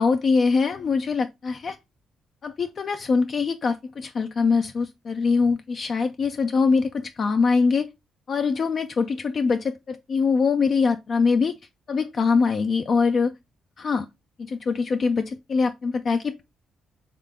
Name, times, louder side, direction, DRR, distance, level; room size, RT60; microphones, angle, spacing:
voice 1, 0.0-1.8 2.4-7.9 8.3-11.6 11.9-13.3 13.8-14.1 14.5-16.4, left 4 dB, 45° left, 0.4 m, -23 dB
3.7 x 3.2 x 3.5 m
cardioid pair, 90°, 0 cm